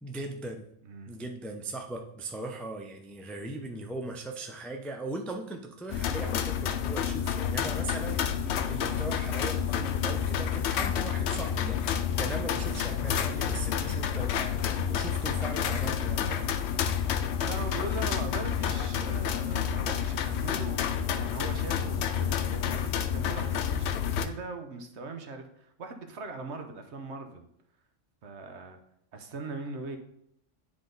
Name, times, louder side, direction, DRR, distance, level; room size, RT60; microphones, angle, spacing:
voice 1, 0.0-0.7 1.1-16.5, right 2 dB, ahead, 3 dB, 0.3 m, -39 dB
voice 2, 0.8-1.1 8.8-9.1 17.4-27.5 28.2-28.8 29.1-30.0, right 3 dB, 65° right, 6 dB, 1.1 m, -40 dB
sound 1, 5.9-24.3, left 8 dB, 70° left, 0.8 m, -29 dB
sound 2, 11.3-14.5, left 2 dB, 35° left, 0.7 m, -50 dB
9.9 x 3.7 x 3.9 m, 0.77 s
omnidirectional pair, 1.3 m